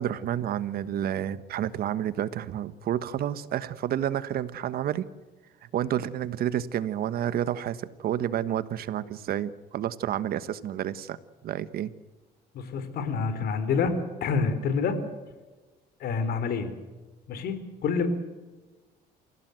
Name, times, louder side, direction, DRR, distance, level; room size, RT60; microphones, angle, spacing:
voice 1, 0.0-5.0 5.7-11.2 11.4-11.9, right 11 dB, 65° right, 14 dB, 1.3 m, -30 dB
voice 2, 12.5-15.0 16.0-16.7 17.3-18.1, left 5 dB, 65° left, 10 dB, 4.0 m, -27 dB
28.0 x 17.0 x 8.0 m, 1.2 s
cardioid pair, 110°, 17 cm